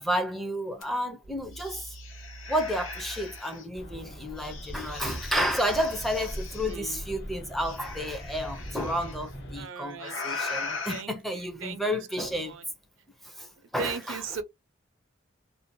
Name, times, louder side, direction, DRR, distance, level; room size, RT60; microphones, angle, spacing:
voice 1, 0.0-2.0 2.5-12.6 13.2-14.2, equal, ahead, 0.4 m, -31 dB
sound 1, 0.8-0.9 1.2-3.6 4.4-6.7 7.6-9.1 10.0-11.0, left 4 dB, 80° left, 0.9 m, -39 dB
sound 2, 3.7-9.7, equal, 60° left, 1.2 m, -41 dB
voice 2, 6.6-7.0 9.5-10.1 10.9-12.6 13.8-14.4, right 5 dB, 75° right, 0.5 m, -38 dB
2.6 x 2.0 x 2.6 m
head